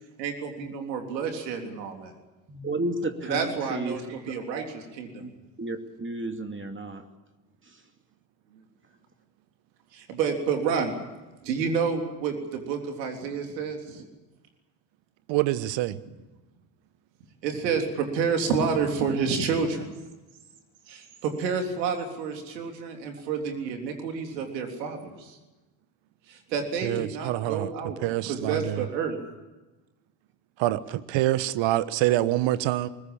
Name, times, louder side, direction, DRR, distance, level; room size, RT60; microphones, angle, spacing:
voice 1, 0.2-2.1 3.2-5.2 9.9-10.9 11.4-14.0 16.1-16.2 17.4-19.9 20.9-25.4 26.3-29.2, right 5 dB, 85° right, 4 dB, 3.6 m, -29 dB
voice 2, 2.5-4.0 4.5-4.6 5.2-5.3 5.6-7.0, right 2 dB, 25° right, 6 dB, 2.7 m, -32 dB
voice 3, 15.3-16.0 26.8-27.7 28.0-28.8 30.6-32.9, right 15 dB, 60° right, 15 dB, 1.3 m, -26 dB
21.5 x 20.0 x 8.8 m, 1.1 s
hypercardioid pair, 60°, 49 cm